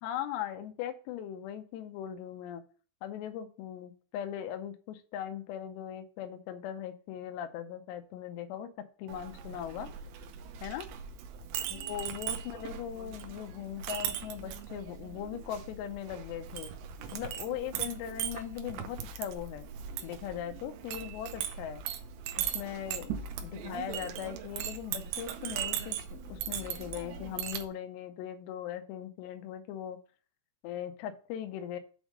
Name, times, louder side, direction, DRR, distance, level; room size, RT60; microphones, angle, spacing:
voice 1, 0.0-2.6 3.0-8.7 9.0-9.9 10.6-10.9 11.7-16.7 17.1-19.7 20.0-21.8 22.4-23.1 23.4-30.0 30.6-31.8, left 10 dB, 85° left, 7 dB, 2.6 m, -39 dB
Chink clink, 9.1-27.7, right 9 dB, 85° right, 2.5 m, -39 dB
7.2 x 3.6 x 6.0 m, 0.40 s
omnidirectional pair, 5.6 m